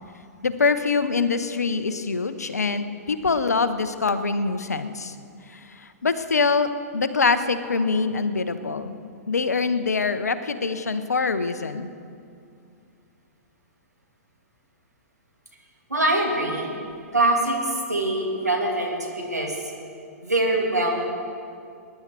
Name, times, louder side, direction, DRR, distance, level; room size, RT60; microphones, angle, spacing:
voice 1, 0.4-5.1 5.5-8.9 9.3-11.9, left 4 dB, 80° left, 11 dB, 0.8 m, -24 dB
voice 2, 15.9-16.7 17.1-19.6 20.2-21.0, right 2 dB, 90° right, 0 dB, 2.6 m, -23 dB
20.5 x 10.5 x 4.5 m, 2.4 s
figure-of-eight pair, 110°, 9 cm